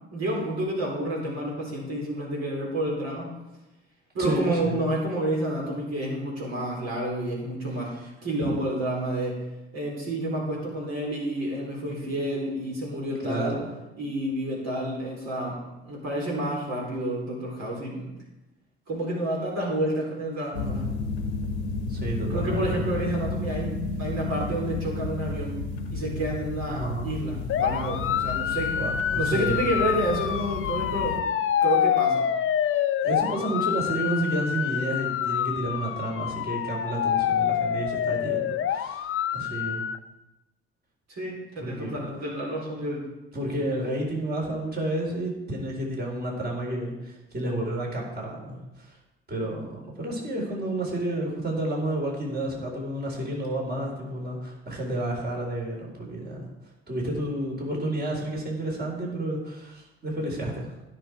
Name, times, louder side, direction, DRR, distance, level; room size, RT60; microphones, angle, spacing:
voice 1, 0.1-3.3 4.1-7.9 8.2-9.4 9.7-13.6 14.0-15.6 15.8-18.1 18.9-20.9 22.3-25.6 25.9-28.8 29.1-31.2 31.6-32.3 41.1-43.0, right 1 dB, 55° right, -3 dB, 4.3 m, -29 dB
voice 2, 4.2-4.8 8.4-8.5 13.2-13.6 21.9-22.8 26.7-27.1 28.7-29.6 33.0-39.8 41.6-42.0 43.3-49.0 49.3-56.4 56.9-60.7, right 1 dB, 30° right, -1 dB, 4.1 m, -31 dB
sound 1, 20.5-31.2, left 3 dB, 85° left, 1.1 m, -32 dB
sound 2, 27.5-40.0, left 9 dB, 45° left, 0.7 m, -27 dB
16.0 x 6.4 x 4.7 m, 1.0 s
hypercardioid pair, 55°, 31 cm